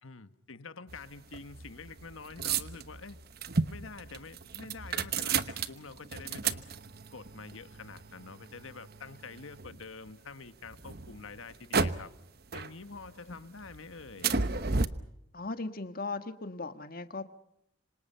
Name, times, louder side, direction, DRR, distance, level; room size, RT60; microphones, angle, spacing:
voice 1, 0.0-3.2 3.7-6.6 7.1-12.1 12.5-14.3, left 4 dB, 80° left, 1.3 m, -47 dB
sound 1, 0.9-10.1 10.6-12.2 12.5-13.3 13.6-14.9, right 4 dB, 50° right, 1.0 m, -34 dB
voice 2, 15.3-17.2, left 3 dB, 45° left, 1.7 m, -38 dB
26.5 x 26.0 x 5.7 m
head